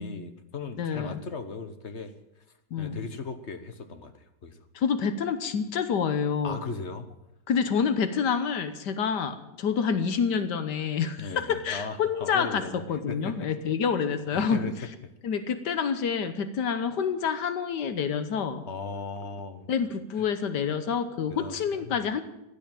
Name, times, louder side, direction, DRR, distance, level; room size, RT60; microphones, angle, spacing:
voice 1, 0.0-2.1 2.8-4.6 6.4-7.1 11.2-13.5 14.3-14.7 18.7-19.7 21.3-22.0, left 4 dB, 45° left, 10 dB, 1.3 m, -37 dB
voice 2, 0.8-1.2 2.7-3.0 4.7-6.6 7.5-14.6 15.2-18.6 19.7-22.2, left 6 dB, 80° left, 11 dB, 1.6 m, -28 dB
16.0 x 10.0 x 9.0 m, 0.87 s
omnidirectional pair, 1.8 m